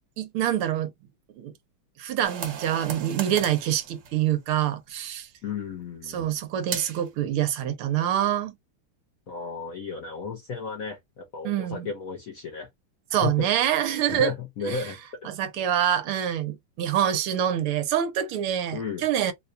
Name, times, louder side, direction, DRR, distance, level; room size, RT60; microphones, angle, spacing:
voice 1, 0.2-0.9 1.4-1.5 2.0-5.3 6.1-8.5 11.4-11.9 13.1-14.3 14.6-14.9 15.2-19.3, right 10 dB, 80° right, 1.6 m, -26 dB
sound 1, 2.2-4.7 6.7-7.1, right 7 dB, 60° right, 1.6 m, -36 dB
voice 2, 5.4-6.4 9.3-12.7 13.2-13.5 14.1-15.3 18.7-19.1, left 5 dB, 60° left, 0.9 m, -34 dB
4.1 x 2.3 x 2.6 m
omnidirectional pair, 2.4 m